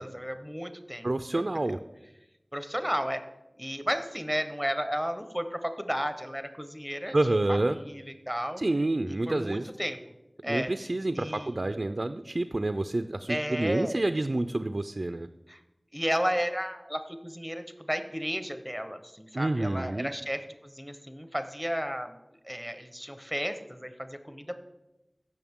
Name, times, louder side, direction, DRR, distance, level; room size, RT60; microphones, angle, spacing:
voice 1, 0.0-1.1 1.7-1.8 2.5-3.2 3.6-8.6 9.1-10.0 10.4-11.8 13.3-14.0 15.5-15.6 15.9-22.2 22.4-24.6, equal, ahead, 8 dB, 1.0 m, -33 dB
voice 2, 1.0-1.8 7.1-7.8 8.6-9.7 10.4-15.3 19.3-20.1, right 2 dB, 70° right, 9 dB, 0.4 m, -28 dB
15.5 x 6.4 x 3.7 m, 0.95 s
wide cardioid pair, 45°, 0 cm